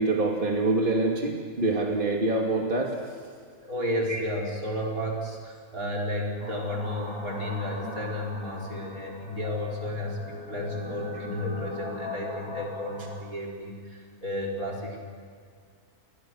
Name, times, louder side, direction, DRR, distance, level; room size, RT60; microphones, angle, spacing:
voice 1, 0.0-2.9 4.1-4.2, right 2 dB, 35° right, 0 dB, 2.8 m, -25 dB
voice 2, 3.6-15.0, left 1 dB, 75° right, 0 dB, 5.5 m, -32 dB
sound 1, 6.4-13.2, left 2 dB, 65° left, 5.0 m, -39 dB
29.5 x 23.0 x 6.4 m, 2.1 s
omnidirectional pair, 1.5 m